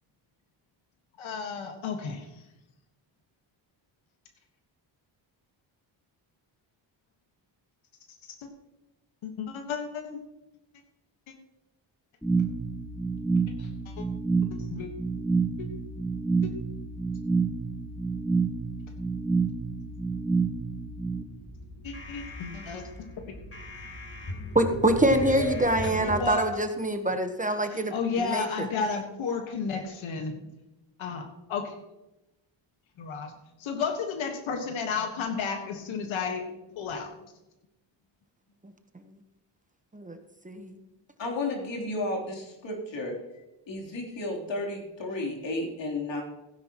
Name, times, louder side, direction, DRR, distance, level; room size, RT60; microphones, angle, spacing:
voice 1, 1.2-2.3 8.4-8.5 9.2-10.2 13.6-14.1 14.5-14.9 15.6-15.7 21.8-23.2 25.8-26.5 27.7-30.3 31.0-31.7 33.0-33.3 33.6-36.5 36.8-37.1, left 5 dB, 90° left, 4 dB, 1.6 m, -32 dB
sound 1, 12.2-21.2, right 4 dB, 5° left, 1.5 m, -28 dB
sound 2, 21.3-26.3, left 1 dB, 30° left, 4.5 m, -36 dB
voice 2, 24.5-28.4 39.9-40.2 40.4-40.8, right 1 dB, 15° right, 6 dB, 1.1 m, -25 dB
voice 3, 41.2-43.2 43.7-46.2, left 2 dB, 70° left, -1 dB, 3.5 m, -32 dB
16.0 x 10.0 x 3.0 m, 0.96 s
cardioid pair, 95°, 46 cm